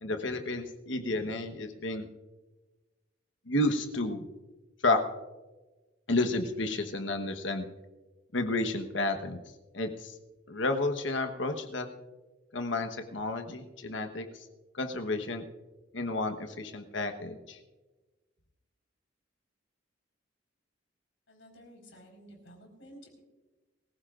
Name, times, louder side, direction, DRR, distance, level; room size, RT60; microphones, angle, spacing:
voice 1, 0.0-2.1 3.5-4.3 4.8-5.0 6.1-7.6 8.3-9.4 9.7-10.1 10.5-11.9 12.5-14.4 14.7-15.4 15.9-17.6, left 2 dB, 70° left, 6 dB, 1.2 m, -31 dB
voice 2, 21.3-23.2, equal, 85° left, 2 dB, 4.6 m, -53 dB
23.0 x 15.5 x 2.5 m, 1.2 s
head